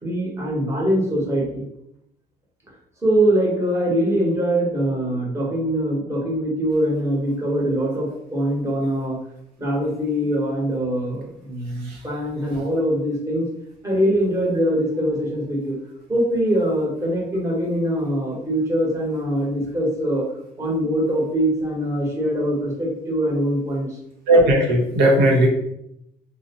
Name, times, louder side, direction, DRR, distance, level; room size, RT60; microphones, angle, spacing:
voice 1, 0.0-1.6 3.0-9.2 9.6-13.5 13.8-15.8 16.1-20.2 20.6-24.0, equal, 15° right, -3 dB, 0.9 m, -23 dB
voice 2, 24.3-25.5, right 1 dB, 85° right, -2 dB, 0.8 m, -16 dB
2.6 x 2.0 x 2.7 m, 0.78 s
cardioid pair, 110°, 17 cm